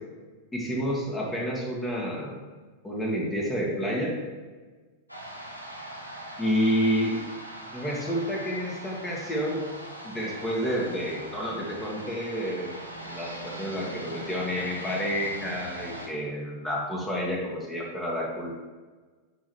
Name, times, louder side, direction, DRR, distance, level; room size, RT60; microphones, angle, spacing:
voice 1, 0.5-2.4 2.8-4.2 6.4-7.2 7.7-9.6 10.0-12.8 13.1-18.6, equal, 15° left, -3 dB, 1.7 m, -29 dB
sound 1, 5.1-16.1, right 1 dB, 85° left, 0.9 m, -41 dB
10.0 x 3.9 x 3.3 m, 1.4 s
figure-of-eight pair, 90°, 0 cm